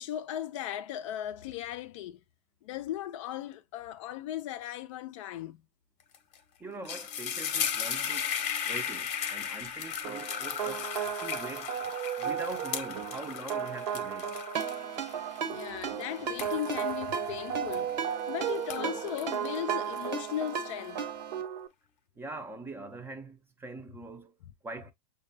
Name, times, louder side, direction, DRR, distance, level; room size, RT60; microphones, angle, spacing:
voice 1, 0.0-2.2 2.6-5.6 15.5-17.9 18.3-21.1, left 12 dB, 50° left, 0.4 m, -37 dB
sound 1, 6.1-6.4 6.7-18.2 18.6-20.5, left 8 dB, 30° left, 0.8 m, -36 dB
voice 2, 6.6-8.3 8.6-10.9 11.2-11.8 12.2-14.4 22.2-24.3 24.6-24.9, right 3 dB, 10° right, 0.5 m, -43 dB
sound 2, 10.0-21.7, right 9 dB, 50° right, 0.7 m, -36 dB
Ringtone, 14.5-21.4, right 6 dB, 75° right, 1.2 m, -38 dB
6.4 x 2.3 x 2.6 m
hypercardioid pair, 120°, 21 cm